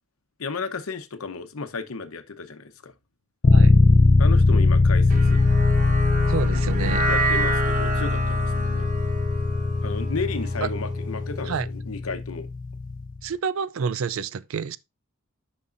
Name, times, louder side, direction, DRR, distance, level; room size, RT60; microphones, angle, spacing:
voice 1, 0.4-2.9 4.2-5.4 7.1-8.9 9.8-12.5, left 4 dB, 85° left, 0.9 m, -33 dB
sound 1, 3.4-13.2, left 3 dB, 40° left, 0.5 m, -21 dB
sound 2, 5.1-11.5, right 2 dB, 40° right, 1.1 m, -29 dB
voice 2, 6.3-7.1 10.6-10.7 11.5-11.7 13.2-14.8, right 6 dB, 70° right, 0.4 m, -28 dB
11.0 x 5.4 x 2.5 m
head